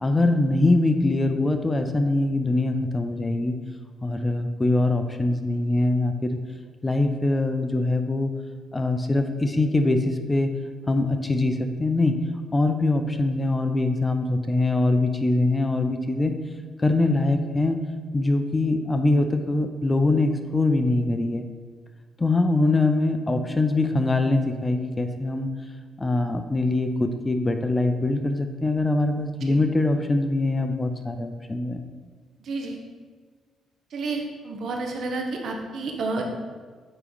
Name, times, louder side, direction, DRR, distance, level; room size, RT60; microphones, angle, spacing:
voice 1, 0.0-3.6 4.0-6.4 6.8-8.3 8.7-10.5 10.9-12.2 12.5-16.4 16.8-17.8 18.1-21.4 22.2-25.5 26.0-31.8, left 2 dB, 20° left, 7 dB, 0.5 m, -23 dB
voice 2, 32.4-32.8 33.9-36.4, right 3 dB, 65° right, 2 dB, 0.9 m, -30 dB
8.8 x 3.1 x 4.0 m, 1.5 s
cardioid pair, 95°, 0 cm